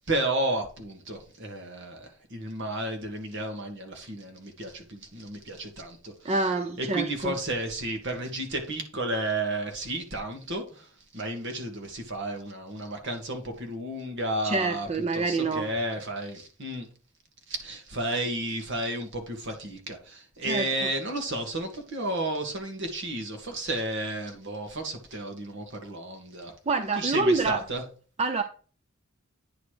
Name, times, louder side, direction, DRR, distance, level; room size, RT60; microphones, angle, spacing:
voice 1, 0.1-6.5 6.8-14.9 15.1-16.9 17.5-26.5 26.9-27.8, right 1 dB, 60° right, 1.8 m, -32 dB
voice 2, 6.2-7.3 14.4-15.7 20.4-20.7 26.7-27.6 28.2-28.4, right 3 dB, 30° right, 0.5 m, -26 dB
9.6 x 4.1 x 4.8 m
head